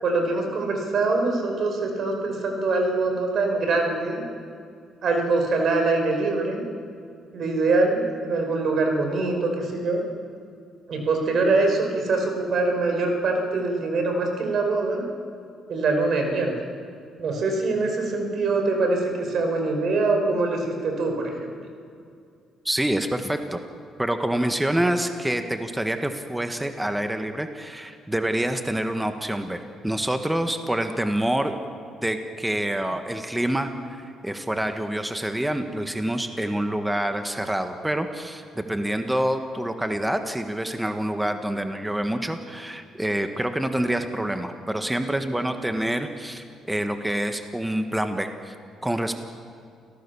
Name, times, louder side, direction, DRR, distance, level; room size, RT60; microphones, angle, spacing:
voice 1, 0.0-4.2 5.0-6.6 7.3-10.0 10.9-15.0 15.7-16.5 17.2-21.5, right 3 dB, 60° right, 3 dB, 5.3 m, -24 dB
voice 2, 22.6-23.6 24.0-31.5 32.0-48.5 48.8-49.2, right 1 dB, 10° right, 7 dB, 1.5 m, -27 dB
29.5 x 17.0 x 7.1 m, 2.4 s
cardioid pair, 80°, 0 cm